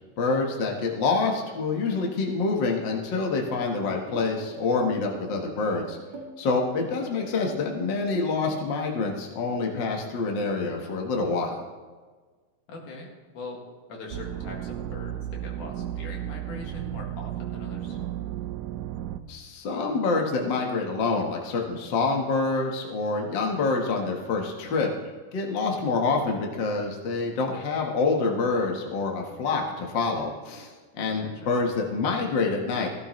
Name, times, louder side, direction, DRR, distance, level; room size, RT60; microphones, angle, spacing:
voice 1, 0.2-6.0 6.4-11.6 19.3-24.9 25.3-32.9, left 4 dB, 50° left, 1 dB, 1.5 m, -27 dB
sound 1, 3.5-8.7, right 3 dB, 40° right, 2.8 m, -42 dB
voice 2, 12.7-13.6 13.9-18.0 31.2-31.5, left 3 dB, 65° left, -1 dB, 3.5 m, -42 dB
sound 2, 14.1-19.2, right 12 dB, 80° right, 2.1 m, -34 dB
15.5 x 15.5 x 3.2 m, 1.4 s
omnidirectional pair, 3.9 m